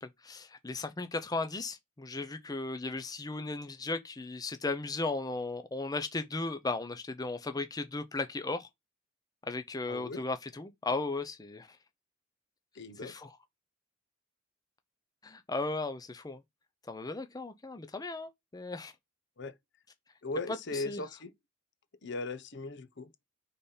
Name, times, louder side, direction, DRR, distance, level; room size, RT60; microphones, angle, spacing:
voice 1, 0.0-8.7 9.5-11.8 13.0-13.4 15.2-16.4 16.9-18.9 20.5-21.0, left 3 dB, 20° left, 0.6 m, -36 dB
voice 2, 9.9-10.2 12.8-13.1 19.4-19.5 20.2-21.3 22.0-23.1, left 3 dB, 60° left, 0.9 m, -38 dB
5.1 x 4.1 x 5.6 m
head